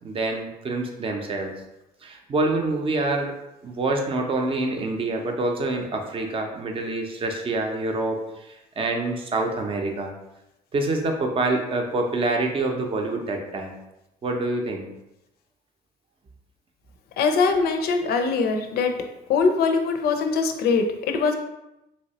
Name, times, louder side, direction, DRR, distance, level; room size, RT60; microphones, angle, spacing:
voice 1, 0.0-1.5 2.0-3.3 3.6-10.1 10.7-13.8 14.2-14.9, right 2 dB, 30° right, 3 dB, 0.6 m, -26 dB
voice 2, 17.2-18.9 19.3-21.3, left 4 dB, 70° left, 5 dB, 0.5 m, -22 dB
3.2 x 2.9 x 2.8 m, 0.91 s
cardioid pair, 110°, 17 cm